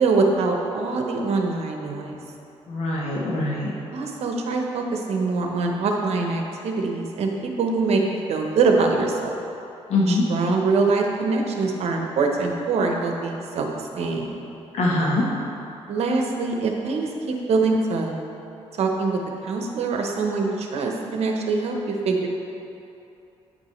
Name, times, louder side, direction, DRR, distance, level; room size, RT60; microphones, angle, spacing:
voice 1, 0.0-2.2 3.9-7.3 7.6-8.0 8.3-9.4 10.1-14.3 15.9-18.1 18.8-22.3, right 3 dB, 75° right, 2 dB, 0.8 m, -24 dB
voice 2, 2.7-3.7 9.9-10.3 14.7-15.3, left 2 dB, 70° left, -4 dB, 1.1 m, -22 dB
9.1 x 5.4 x 3.1 m, 2.8 s
cardioid pair, 105°, 11 cm